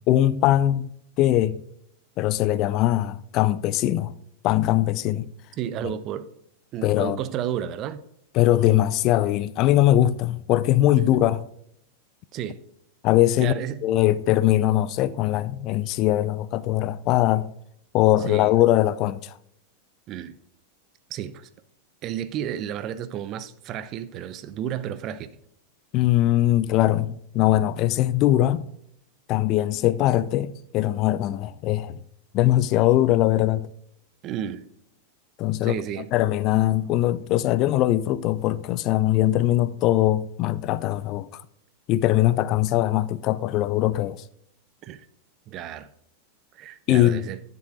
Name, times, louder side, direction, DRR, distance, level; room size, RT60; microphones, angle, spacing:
voice 1, 0.1-0.9 1.2-1.6 2.2-4.1 4.4-5.3 5.8-6.0 6.8-7.2 8.3-11.4 13.0-17.5 17.9-19.4 25.9-28.7 29.3-32.0 32.3-33.7 35.4-35.8 36.1-41.4 41.9-44.2 46.9-47.2, left 14 dB, 40° left, 0.4 m, -21 dB
voice 2, 5.6-6.3 6.7-8.0 11.0-11.2 12.3-12.6 13.4-13.8 18.2-18.5 20.1-20.4 21.1-21.5 22.0-25.3 34.2-34.6 35.6-36.1 44.8-45.1 45.5-45.9 46.5-47.4, right 10 dB, 35° right, 0.6 m, -32 dB
10.5 x 7.7 x 3.8 m
figure-of-eight pair, 90°, 0 cm